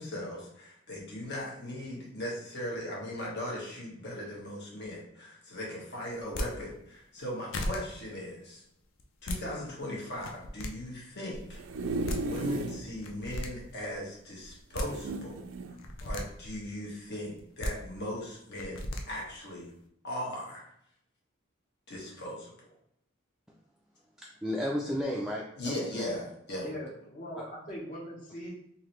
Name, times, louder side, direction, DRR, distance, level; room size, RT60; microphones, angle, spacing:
voice 1, 0.0-8.6 9.2-11.6 12.3-15.4 16.0-19.7 20.0-20.7 21.9-22.5 25.6-26.7, left 1 dB, 60° left, -3 dB, 1.4 m, -38 dB
sound 1, 6.2-6.5 7.2-7.3 7.5-7.8 9.0-9.4 10.1-10.7 11.8-11.9 12.1-12.2 13.0-13.5 14.5-14.9 15.8-16.2 17.4-17.7 18.6-19.0, left 1 dB, 80° left, 0.5 m, -34 dB
sound 2, 11.3-12.9 13.3-13.4 13.6-13.7 14.8-15.8 16.4-16.6, right 2 dB, 80° right, 0.4 m, -34 dB
voice 2, 24.2-26.2, left 1 dB, 5° right, -3 dB, 0.3 m, -34 dB
voice 3, 26.6-28.5, equal, 40° left, -7 dB, 0.9 m, -41 dB
3.8 x 2.7 x 3.1 m, 0.74 s
head